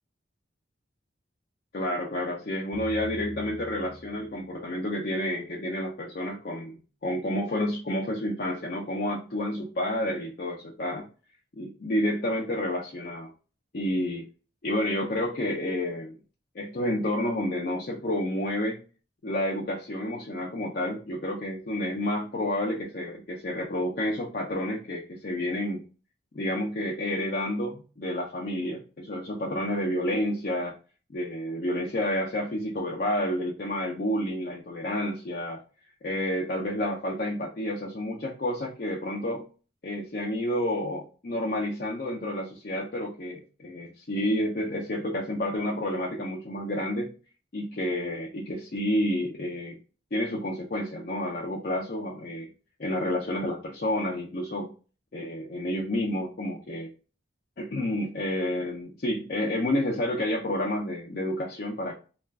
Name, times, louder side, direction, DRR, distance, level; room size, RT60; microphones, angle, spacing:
voice 1, 1.7-11.1 11.6-13.3 13.7-14.3 14.6-16.2 16.5-18.8 19.2-25.8 26.3-28.8 29.1-30.7 31.1-35.6 36.0-39.5 39.8-47.1 47.5-49.8 50.1-52.5 52.8-54.7 55.1-56.9 57.6-61.9, left 1 dB, 50° left, -3 dB, 0.5 m, -30 dB
sound 1, 2.7-5.1, equal, 15° right, 0.5 m, -45 dB
2.4 x 2.3 x 3.2 m, 0.35 s
head